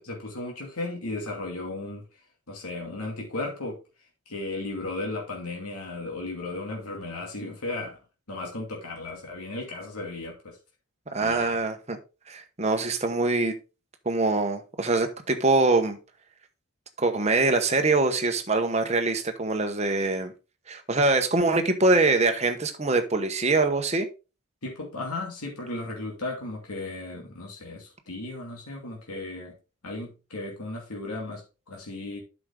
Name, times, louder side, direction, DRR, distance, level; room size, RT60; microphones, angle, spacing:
voice 1, 0.0-2.0 2.5-3.8 4.3-8.0 8.3-10.6 11.2-11.6 24.6-29.6 29.8-32.2, left 2 dB, 90° left, -1 dB, 2.6 m, -35 dB
voice 2, 11.1-12.0 12.3-13.5 14.0-16.0 17.0-20.3 20.7-24.1, right 3 dB, 30° right, 6 dB, 1.1 m, -24 dB
8.6 x 6.1 x 3.8 m, 0.30 s
head